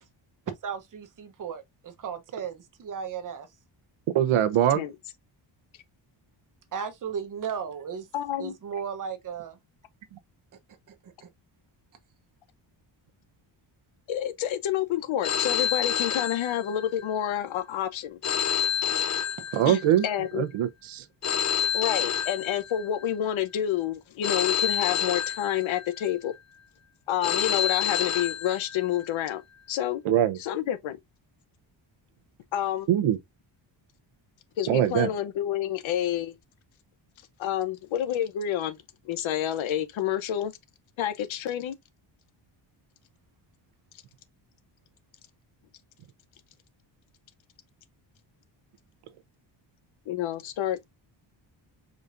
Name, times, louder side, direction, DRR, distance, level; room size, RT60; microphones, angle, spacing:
voice 1, 0.6-3.5 6.7-8.1 8.4-9.6 10.9-11.3, right 7 dB, 40° right, 0.9 m, -35 dB
voice 2, 4.1-4.8 19.6-20.1 20.3-21.0 30.0-30.4 32.9-33.2 34.7-35.1, right 11 dB, 85° right, 0.9 m, -22 dB
voice 3, 8.1-8.5 14.1-18.3 19.7-20.4 21.7-26.3 27.1-29.4 29.7-30.0 30.4-31.0 32.5-32.9 34.6-36.3 37.4-38.8 39.0-40.5 41.0-41.8 50.1-50.8, left 11 dB, 75° left, 0.9 m, -29 dB
Telephone, 15.2-17.1 18.2-20.1 21.2-23.1 24.2-26.1 27.2-29.1, left 8 dB, 35° left, 0.5 m, -28 dB
5.0 x 4.0 x 2.5 m
wide cardioid pair, 175°, 48 cm